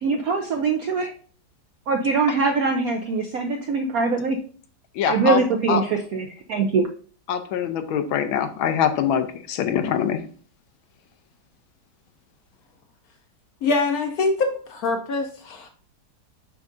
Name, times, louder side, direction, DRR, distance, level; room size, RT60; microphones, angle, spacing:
voice 1, 0.0-1.1 1.9-4.4 5.1-6.9, right 4 dB, 75° right, 4 dB, 0.8 m, -23 dB
voice 2, 4.9-5.4 5.7-5.8 7.3-10.2, left 8 dB, 90° left, 9 dB, 1.5 m, -23 dB
voice 3, 13.6-15.7, left 3 dB, 70° left, 5 dB, 0.9 m, -24 dB
7.1 x 5.4 x 2.5 m, 0.43 s
omnidirectional pair, 2.2 m